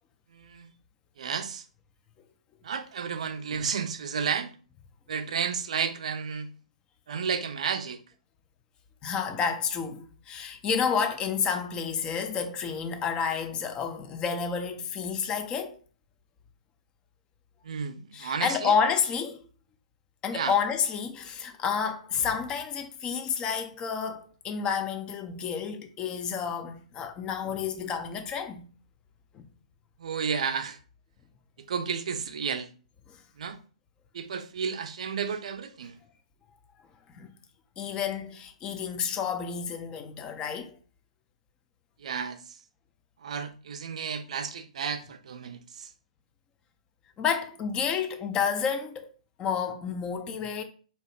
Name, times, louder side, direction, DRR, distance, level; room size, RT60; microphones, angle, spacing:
voice 1, 0.3-0.7 1.2-1.6 2.6-4.5 5.1-6.5 7.1-8.0 17.6-18.7 20.3-20.5 30.0-30.8 31.7-32.7 33.4-33.6 34.1-36.0 42.0-42.4 43.2-45.9, right 6 dB, 60° right, 0.4 m, -32 dB
voice 2, 9.0-15.8 18.1-19.4 20.2-28.7 29.3-29.4 33.1-33.2 37.1-37.3 37.8-40.7 47.2-49.1 49.4-50.6, left 6 dB, 20° left, 0.4 m, -30 dB
2.7 x 2.0 x 3.1 m
figure-of-eight pair, 120°, 4 cm